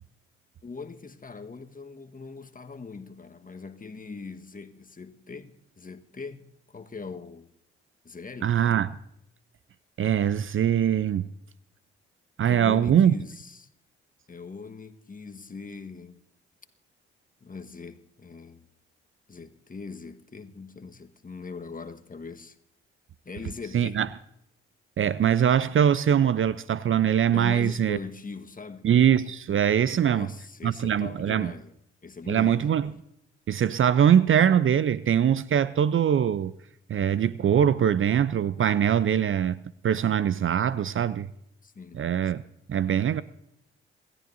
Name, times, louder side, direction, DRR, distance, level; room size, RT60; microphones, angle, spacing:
voice 1, 0.6-7.5 8.0-8.6 12.4-13.7 14.3-16.2 17.4-18.7 19.3-22.6 23.2-24.0 27.3-28.9 29.9-32.7 41.6-42.0, left 4 dB, 25° left, 1.4 m, -41 dB
voice 2, 8.4-8.9 10.0-11.3 12.4-13.1 23.7-24.1 25.0-28.0 28.8-30.3 30.6-31.5 32.3-32.9 33.5-36.5 36.9-41.3 41.9-42.4 42.7-43.2, right 9 dB, 40° right, 0.6 m, -22 dB
27.5 x 14.0 x 2.7 m
hypercardioid pair, 40°, 30 cm